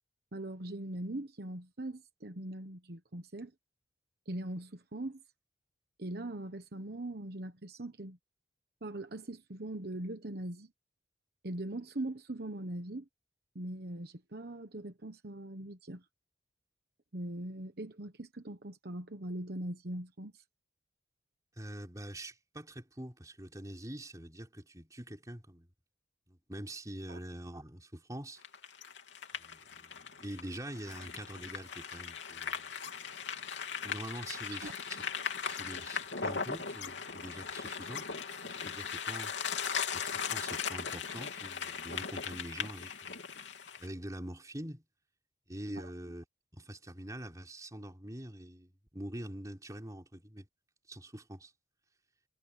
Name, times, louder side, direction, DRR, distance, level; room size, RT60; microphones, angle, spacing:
voice 1, 0.3-3.5 4.3-5.2 6.0-8.2 8.8-10.7 11.4-13.1 13.5-16.1 17.1-20.4 27.1-27.2 34.5-34.7 45.8-45.9, right 1 dB, 55° right, 1.2 m, -41 dB
voice 2, 21.6-25.7 26.3-28.4 29.4-32.7 33.8-35.0 35.4-38.1 38.6-39.3 39.9-43.1 43.8-44.8 45.5-46.2 46.5-50.5 50.9-51.5, right 1 dB, 20° right, 4.2 m, -45 dB
sound 1, 28.4-43.9, left 6 dB, 80° left, 3.2 m, -38 dB
head